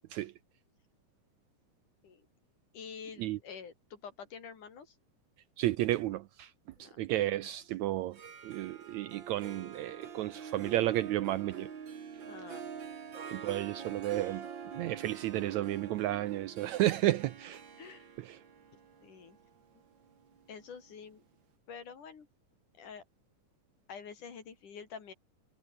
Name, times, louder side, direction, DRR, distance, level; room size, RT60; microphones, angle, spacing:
voice 1, 2.7-5.0 6.8-7.0 12.3-12.7 17.8-18.1 19.0-19.4 20.5-21.2 21.7-22.3 22.8-23.0 23.9-25.1, left 6 dB, 70° left, 5.0 m, -47 dB
voice 2, 5.6-6.5 6.8-8.2 8.4-11.7 13.3-14.5 14.7-17.6 18.2-18.4, right 15 dB, 75° right, 1.7 m, -32 dB
Harp, 8.0-20.9, right 7 dB, 40° right, 2.3 m, -46 dB
omnidirectional pair, 3.8 m